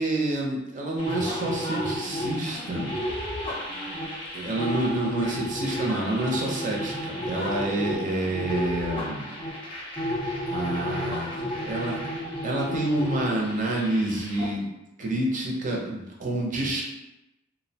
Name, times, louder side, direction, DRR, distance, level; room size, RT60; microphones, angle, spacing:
voice 1, 0.0-2.9 4.3-9.3 10.5-12.0 12.4-14.7 15.0-16.8, right 1 dB, 40° right, -1 dB, 0.6 m, -28 dB
sound 1, 1.0-14.5, equal, 30° left, 0.6 m, -32 dB
2.5 x 2.0 x 2.7 m, 0.95 s
head